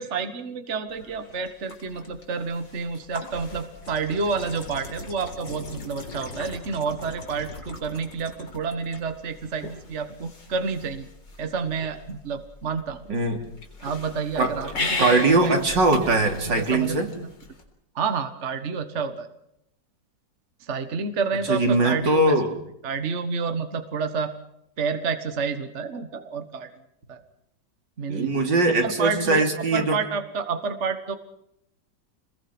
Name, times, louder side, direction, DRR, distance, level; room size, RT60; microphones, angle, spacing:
voice 1, 0.0-11.1 11.4-13.0 13.8-15.6 16.0-17.3 17.9-19.3 20.6-22.4 22.8-24.3 24.8-26.7 27.1-27.2 28.0-28.5 28.8-29.5 29.7-31.2, right 5 dB, 40° right, 8 dB, 1.7 m, -29 dB
sound 1, 0.9-17.6, left 3 dB, 80° left, 4.5 m, -38 dB
voice 2, 15.0-17.1 21.5-22.5 28.1-30.0, right 2 dB, 75° right, 4 dB, 3.9 m, -21 dB
27.0 x 21.0 x 6.1 m, 0.77 s
omnidirectional pair, 2.0 m